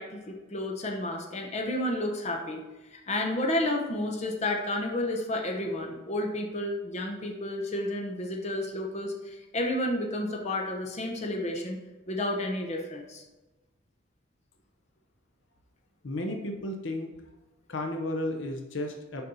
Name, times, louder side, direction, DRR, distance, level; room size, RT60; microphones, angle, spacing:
voice 1, 0.0-2.6 2.9-11.8 12.1-13.2, left 1 dB, 35° left, 1 dB, 0.8 m, -31 dB
voice 2, 16.0-17.1 17.7-19.2, left 1 dB, 65° left, 3 dB, 0.8 m, -33 dB
6.9 x 5.2 x 4.0 m, 1.1 s
head